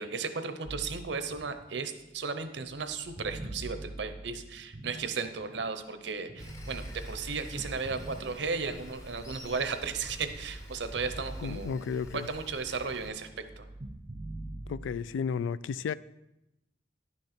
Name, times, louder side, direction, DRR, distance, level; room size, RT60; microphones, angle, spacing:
voice 1, 0.0-11.8 12.1-13.7, right 4 dB, 65° right, 0.7 m, -35 dB
sound 1, 0.6-5.7 6.3-8.9 9.4-12.3 12.5-15.2, right 1 dB, 30° right, 0.5 m, -45 dB
Sawing, 6.4-13.1, left 1 dB, 20° left, 0.7 m, -47 dB
voice 2, 11.4-12.3 14.7-15.9, left 6 dB, 85° left, 0.3 m, -33 dB
10.5 x 6.5 x 4.4 m
head